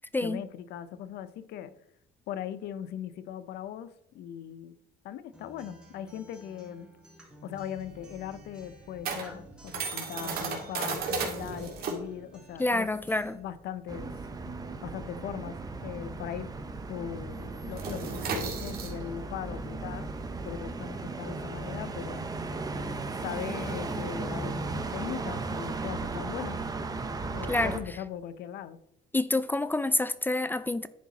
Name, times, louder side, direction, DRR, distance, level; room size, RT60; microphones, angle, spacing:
voice 1, 0.2-1.7 2.3-4.8 5.0-6.9 7.4-12.9 13.3-14.2 14.8-16.5 16.9-20.1 20.4-22.3 23.1-26.6 27.3-28.8, left 9 dB, 75° left, 14 dB, 0.7 m, -39 dB
Acoustic guitar, 5.3-13.3, equal, 5° right, 2.2 m, -53 dB
sound 1, 7.5-16.5 16.7-17.0 17.3-23.0, right 4 dB, 65° right, 2.1 m, -36 dB
voice 2, 12.6-13.4 27.5-27.8 29.1-30.9, left 2 dB, 10° left, 15 dB, 0.4 m, -27 dB
sound 2, 13.9-27.8, right 3 dB, 20° right, 0.8 m, -36 dB
10.5 x 4.6 x 4.0 m, 0.78 s
cardioid pair, 110°, 17 cm